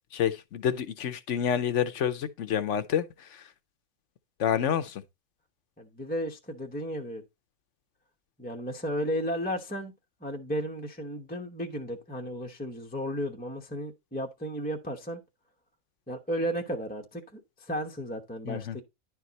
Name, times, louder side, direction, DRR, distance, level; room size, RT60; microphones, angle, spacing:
voice 1, 0.1-3.0 4.4-5.0 18.5-18.8, left 9 dB, 60° left, 1.0 m, -28 dB
voice 2, 5.8-7.2 8.4-9.9 10.2-15.2 16.1-18.8, equal, 10° left, 0.8 m, -34 dB
10.5 x 4.6 x 4.0 m
omnidirectional pair, 1.5 m